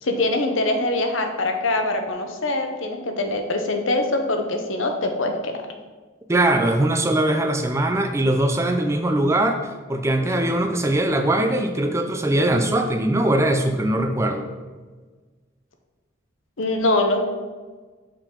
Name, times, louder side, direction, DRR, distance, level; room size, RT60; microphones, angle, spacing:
voice 1, 0.0-5.5 10.4-10.5 16.6-17.2, left 2 dB, 80° left, 5 dB, 0.8 m, -23 dB
voice 2, 6.3-9.6 9.9-14.4, right 1 dB, 15° right, 5 dB, 0.4 m, -21 dB
6.7 x 3.9 x 4.4 m, 1.4 s
head